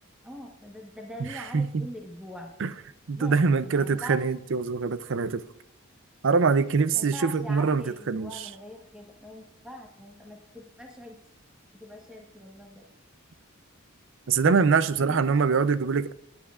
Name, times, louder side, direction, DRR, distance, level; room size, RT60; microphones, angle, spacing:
voice 1, 0.2-2.8 3.2-4.2 6.9-11.2 11.8-12.9 15.0-15.7, equal, 5° right, 1.2 m, -43 dB
voice 2, 3.1-5.4 6.2-8.3 14.3-16.1, right 5 dB, 60° right, 0.5 m, -23 dB
19.5 x 9.6 x 2.4 m
head